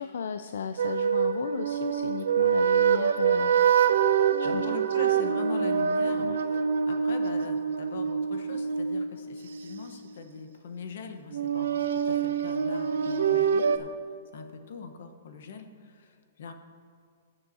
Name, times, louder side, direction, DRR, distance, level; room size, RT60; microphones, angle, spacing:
voice 1, 0.0-3.5 4.4-4.7 6.2-6.4, left 7 dB, 75° left, 9 dB, 0.4 m, -35 dB
sound 1, 0.8-9.8 11.3-13.8, right 7 dB, 80° right, 0.6 m, -25 dB
voice 2, 4.4-13.9 14.3-16.5, left 5 dB, 60° left, 6 dB, 1.0 m, -42 dB
21.0 x 7.0 x 2.8 m, 2.2 s
hypercardioid pair, 175°, 0 cm